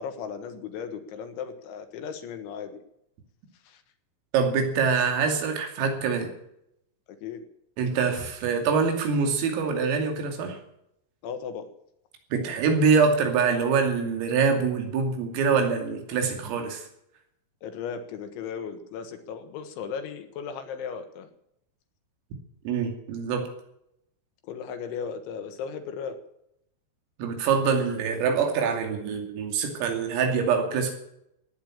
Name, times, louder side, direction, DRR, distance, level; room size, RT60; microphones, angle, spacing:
voice 1, 0.0-2.8 3.7-3.8 7.2-7.5 11.2-11.7 17.6-21.3 24.4-26.2, left 6 dB, 70° left, 8 dB, 3.7 m, -36 dB
voice 2, 4.3-6.3 7.8-10.6 12.3-16.9 22.7-23.5 27.2-31.0, right 5 dB, 85° right, 4 dB, 5.3 m, -24 dB
17.0 x 10.5 x 7.4 m, 0.77 s
omnidirectional pair, 5.8 m